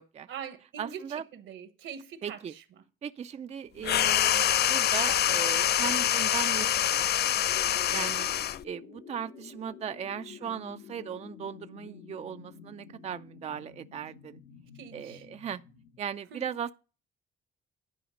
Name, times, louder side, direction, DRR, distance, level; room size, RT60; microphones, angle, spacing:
voice 1, 0.3-2.6 6.0-6.1 10.4-10.7 14.7-15.3 16.3-16.4, right 8 dB, 80° right, 1.3 m, -43 dB
voice 2, 0.8-1.2 2.2-2.5 3.0-7.0 7.9-8.3 8.6-14.4 14.9-15.6 16.0-16.7, right 8 dB, 35° right, 0.4 m, -37 dB
sound 1, 3.8-8.6, left 11 dB, 55° left, 0.4 m, -25 dB
sound 2, 7.5-16.0, left 6 dB, 90° left, 3.1 m, -49 dB
11.0 x 4.9 x 5.1 m
cardioid pair, 90°, 20 cm